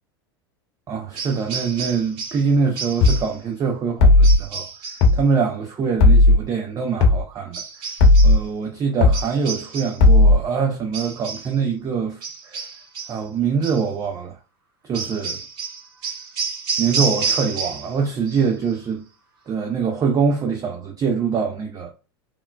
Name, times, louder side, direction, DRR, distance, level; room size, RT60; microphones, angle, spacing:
voice 1, 0.9-4.7 5.1-7.9 8.2-12.7 13.1-14.4 14.8-15.4 16.8-19.1 19.5-21.9, right 5 dB, 30° right, 0.7 m, -24 dB
sound 1, 1.1-2.5 2.7-3.4 4.2-5.1 7.5-8.4 9.1-10.0 10.9-11.5 12.2-13.2 13.6-13.9 14.9-18.0 18.3-18.7, right 5 dB, 60° right, 1.1 m, -30 dB
sound 2, 3.0-3.2 4.0-4.4 5.0-5.2 6.0-6.4 7.0-7.2 8.0-8.4 9.0-9.2 10.0-10.4, left 2 dB, 50° left, 0.9 m, -13 dB
3.7 x 2.1 x 2.3 m
hypercardioid pair, 90°, 13 cm